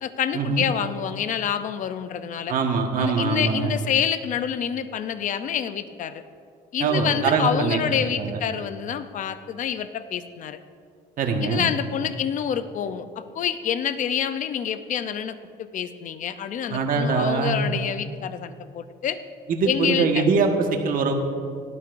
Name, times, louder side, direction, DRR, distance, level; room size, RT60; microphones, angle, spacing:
voice 1, 0.0-2.5 3.0-6.2 6.7-10.6 11.4-19.2 19.7-20.2, left 8 dB, 50° left, 11 dB, 0.6 m, -27 dB
voice 2, 2.5-3.7 6.8-7.8 8.2-8.4 11.2-11.6 16.7-17.6 19.5-21.1, right 5 dB, 55° right, 3 dB, 1.5 m, -23 dB
18.0 x 12.0 x 2.6 m, 2.2 s
cardioid pair, 110°, 17 cm